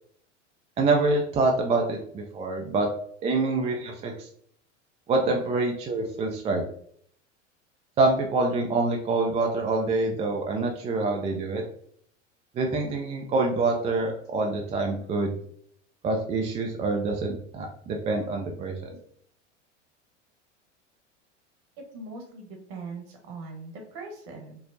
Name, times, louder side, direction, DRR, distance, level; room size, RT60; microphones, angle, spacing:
voice 1, 0.8-2.9 3.2-4.3 5.1-6.6 8.0-11.6 12.6-15.3 16.0-18.9, right 3 dB, 20° right, 2 dB, 0.4 m, -26 dB
voice 2, 21.9-24.6, right 3 dB, 50° right, 2 dB, 1.2 m, -40 dB
4.5 x 2.0 x 2.6 m, 0.63 s
hypercardioid pair, 85°, 37 cm